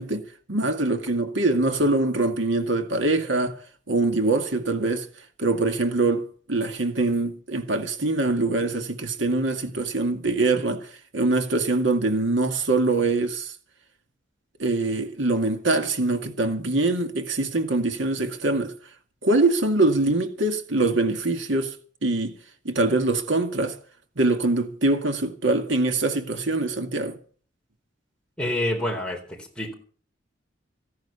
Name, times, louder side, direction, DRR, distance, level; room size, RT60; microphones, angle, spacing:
voice 1, 0.0-3.6 3.9-5.1 5.4-13.5 14.6-18.8 19.2-21.8 22.0-22.3 22.7-23.8 24.2-27.2, right 2 dB, 85° right, 2.0 m, -23 dB
voice 2, 28.4-29.7, left 1 dB, 5° left, 3.8 m, -28 dB
16.0 x 10.5 x 6.9 m
head